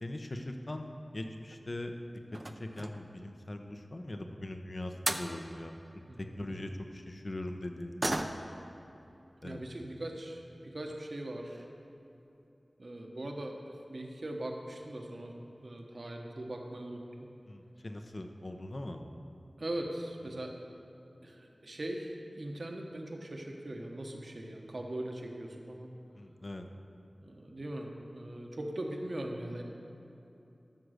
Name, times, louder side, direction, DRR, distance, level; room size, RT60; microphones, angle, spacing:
voice 1, 0.0-5.7 6.2-8.0 9.4-9.7 17.5-19.0 26.2-26.6, left 1 dB, 50° left, 5 dB, 0.9 m, -41 dB
sound 1, 1.4-1.7 2.3-3.1 4.7-4.8 5.0-5.3 8.0-8.6 9.0-9.1 9.5-9.7 10.5-10.6 10.9-11.0 11.4-11.7 12.0-12.1 12.4-12.5, right 1 dB, 40° right, 0.6 m, -36 dB
voice 2, 6.1-6.7 9.4-11.7 12.8-15.3 15.6-17.3 19.6-20.5 21.2-25.9 27.2-29.6, right 1 dB, 65° right, 1 dB, 1.3 m, -40 dB
13.0 x 6.0 x 6.6 m, 2.9 s
wide cardioid pair, 45°, 0 cm